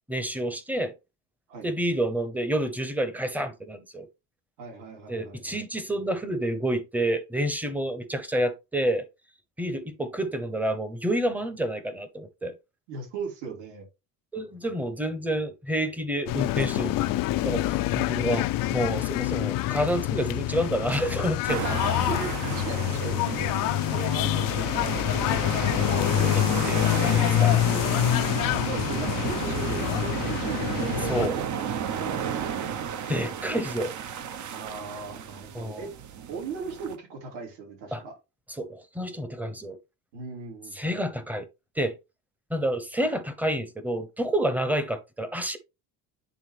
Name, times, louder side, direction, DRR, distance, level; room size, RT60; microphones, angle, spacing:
voice 1, 0.1-0.9 1.6-4.1 5.1-9.1 9.6-12.6 14.3-17.2 17.4-21.6 22.8-23.0 24.8-25.1 25.9-28.0 31.1-31.3 33.1-33.9 35.5-35.8 37.9-38.0 38.6-39.8 40.8-41.5 41.8-42.0 42.5-45.6, right 1 dB, 5° right, 0.8 m, -29 dB
voice 2, 4.6-5.6 12.9-13.9 21.5-23.4 23.9-25.4 26.1-26.4 28.6-32.8 34.5-35.9 36.3-38.1 40.1-41.0, right 5 dB, 70° right, 3.3 m, -38 dB
sound 1, 16.3-31.3, left 15 dB, 50° left, 0.5 m, -26 dB
sound 2, 21.5-37.0, right 8 dB, 45° right, 0.8 m, -33 dB
9.0 x 3.6 x 3.3 m
cardioid pair, 135°, 42 cm